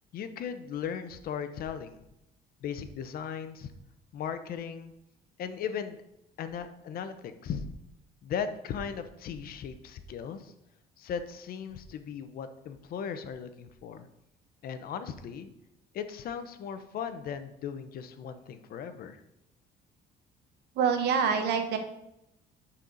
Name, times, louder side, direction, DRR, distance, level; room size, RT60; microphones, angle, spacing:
voice 1, 0.1-2.0 2.6-3.7 4.1-4.9 5.4-6.0 6.4-7.7 8.2-10.5 11.0-14.1 14.6-15.5 15.9-19.2, left 7 dB, 60° left, 10 dB, 0.8 m, -37 dB
voice 2, 20.8-21.8, right 6 dB, 75° right, 6 dB, 1.1 m, -26 dB
11.5 x 4.4 x 4.0 m, 0.83 s
cardioid pair, 110°, 17 cm